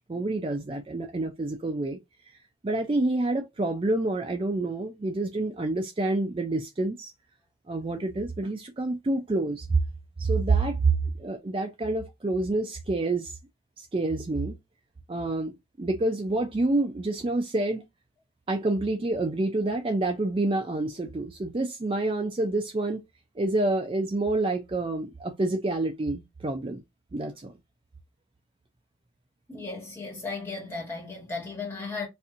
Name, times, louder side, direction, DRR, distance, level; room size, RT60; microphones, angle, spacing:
voice 1, 0.1-2.0 2.6-7.1 7.7-9.8 10.2-13.4 13.8-14.6 15.1-15.5 15.8-17.9 18.5-23.0 23.4-26.8 27.1-27.5, right 2 dB, 30° right, 0.4 m, -27 dB
voice 2, 29.5-32.1, left 4 dB, 15° left, 1.5 m, -35 dB
4.2 x 2.6 x 2.4 m
head